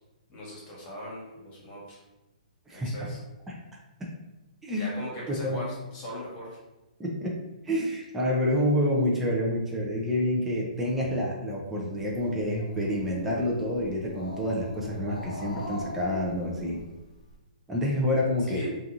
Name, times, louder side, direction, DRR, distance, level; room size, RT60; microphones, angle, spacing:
voice 1, 0.3-2.0 2.7-3.2 4.7-6.6 18.4-18.7, equal, 25° left, -6 dB, 1.1 m, -40 dB
voice 2, 2.7-3.1 3.5-3.6 4.6-4.9 5.3-5.6 7.0-7.3 7.6-16.8 17.7-18.6, left 1 dB, 5° right, -4 dB, 0.4 m, -28 dB
Growling, 12.0-17.3, left 1 dB, 80° left, 0.7 m, -41 dB
2.8 x 2.4 x 2.5 m, 1.0 s
hypercardioid pair, 150°, 4 cm